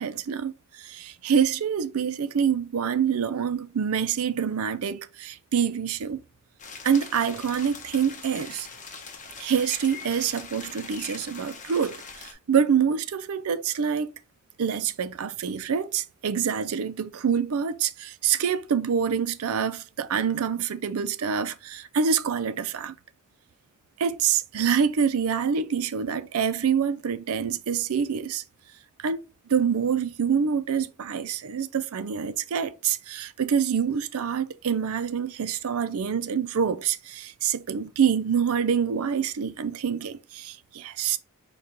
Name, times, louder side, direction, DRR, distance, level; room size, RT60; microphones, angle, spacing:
voice 1, 0.0-6.2 6.8-8.7 9.4-14.1 14.6-22.9 24.0-28.4 29.0-29.2 29.5-41.2, right 7 dB, 75° right, 0.5 m, -26 dB
sound 1, 6.6-12.3, left 5 dB, 35° left, 0.8 m, -42 dB
5.1 x 2.4 x 4.2 m
head